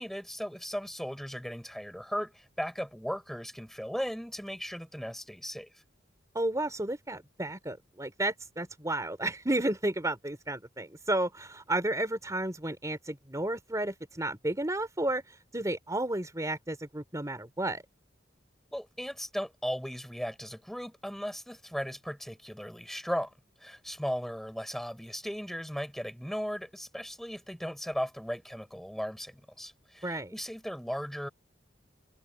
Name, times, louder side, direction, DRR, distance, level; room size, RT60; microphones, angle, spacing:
voice 1, 0.0-5.7 18.7-23.3 23.6-31.3, equal, ahead, 6.4 m, -37 dB
voice 2, 6.3-17.8 30.0-30.3, right 1 dB, 20° right, 3.2 m, -32 dB
head